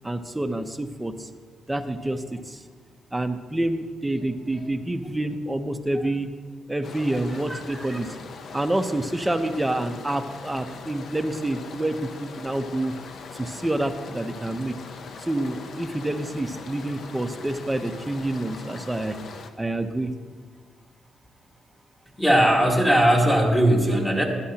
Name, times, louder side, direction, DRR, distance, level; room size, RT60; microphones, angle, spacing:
voice 1, 0.0-1.3 1.7-2.6 3.1-6.3 6.7-8.1 8.5-12.9 13.3-14.7 15.2-19.2 19.6-20.1, right 1 dB, 10° right, 8 dB, 0.7 m, -28 dB
sound 1, 6.8-19.5, left 4 dB, 60° left, 0.7 m, -41 dB
voice 2, 7.3-8.0 22.2-24.2, right 1 dB, 10° left, 0 dB, 1.9 m, -20 dB
12.5 x 10.5 x 2.9 m, 1.5 s
cardioid pair, 90°, 0 cm